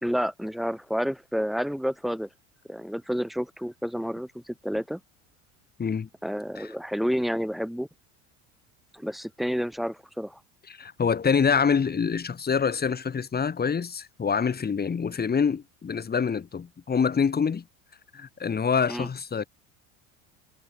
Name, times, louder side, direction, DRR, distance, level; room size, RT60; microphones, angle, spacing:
voice 1, 0.0-2.3 2.7-5.0 6.2-7.9 8.9-10.4 18.9-19.1, equal, ahead, 3.3 m, -30 dB
voice 2, 10.7-17.6 18.1-19.5, left 6 dB, 25° left, 5.0 m, -26 dB
supercardioid pair, 95°, 34 cm